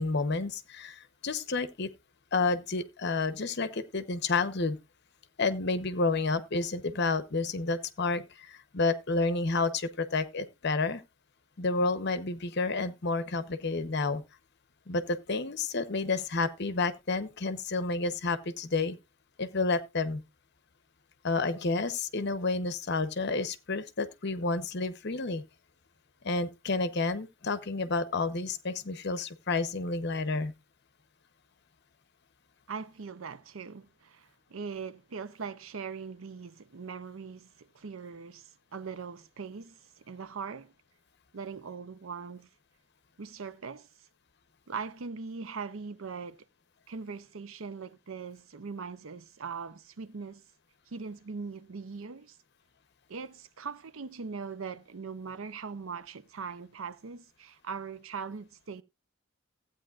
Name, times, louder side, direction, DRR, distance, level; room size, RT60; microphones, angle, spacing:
voice 1, 0.0-1.9 2.3-4.8 5.4-11.0 11.6-14.2 14.9-19.0 19.4-20.2 21.2-25.4 26.2-30.5, left 3 dB, 55° left, 0.9 m, -30 dB
voice 2, 32.7-40.7 41.3-42.5 43.2-43.9 44.7-46.4 46.9-50.4 50.9-52.4 53.1-58.8, right 5 dB, 75° right, 0.6 m, -41 dB
15.0 x 8.9 x 2.4 m
head